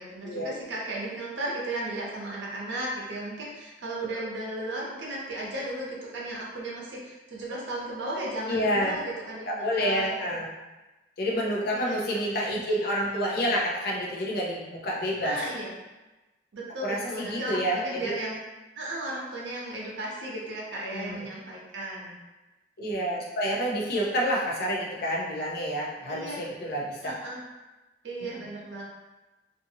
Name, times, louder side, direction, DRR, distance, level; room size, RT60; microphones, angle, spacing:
voice 1, 0.0-10.1 11.7-12.2 12.6-12.9 15.2-15.8 16.5-18.4 18.8-22.1 26.1-26.4 27.0-27.4 28.0-28.8, right 1 dB, 85° right, -4 dB, 0.8 m, -35 dB
voice 2, 8.4-9.0 9.5-10.5 11.2-15.4 16.8-18.1 20.9-21.2 22.8-27.1, equal, 60° left, -3 dB, 0.6 m, -28 dB
2.6 x 2.5 x 2.7 m, 1.1 s
head